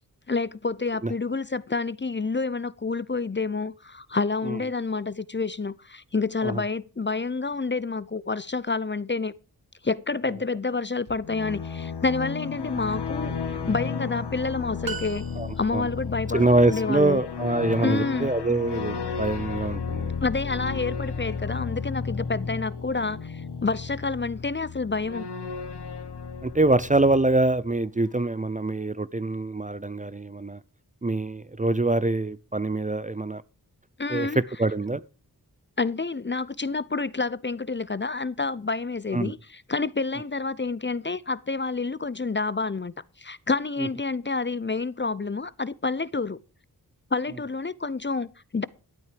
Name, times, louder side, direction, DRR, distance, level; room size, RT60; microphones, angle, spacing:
voice 1, 0.3-9.3 9.8-15.2 15.6-17.2 17.8-18.3 20.2-25.3 34.0-34.4 35.8-46.4 47.1-48.6, left 4 dB, 30° left, 0.6 m, -28 dB
sound 1, 11.1-27.7, left 5 dB, 90° left, 1.3 m, -33 dB
sound 2, 14.8-16.0, right 5 dB, 60° right, 1.4 m, -37 dB
voice 2, 15.4-15.9 16.3-20.1 26.4-30.6 31.0-33.4 34.1-35.0 39.1-39.3 43.8-43.9, right 2 dB, 20° right, 0.5 m, -25 dB
13.0 x 8.7 x 5.1 m
cardioid pair, 45°, 39 cm